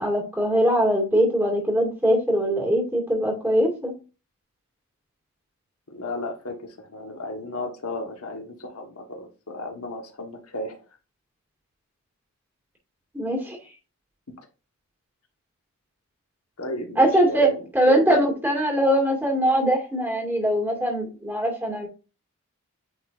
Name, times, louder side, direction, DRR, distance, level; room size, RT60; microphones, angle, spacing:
voice 1, 0.0-3.9 13.1-13.6 17.0-21.9, right 1 dB, 10° right, -1 dB, 2.2 m, -22 dB
voice 2, 5.9-10.8 16.6-17.6 18.0-18.2, left 1 dB, 85° left, 3 dB, 1.4 m, -34 dB
9.1 x 4.1 x 2.6 m, 0.31 s
head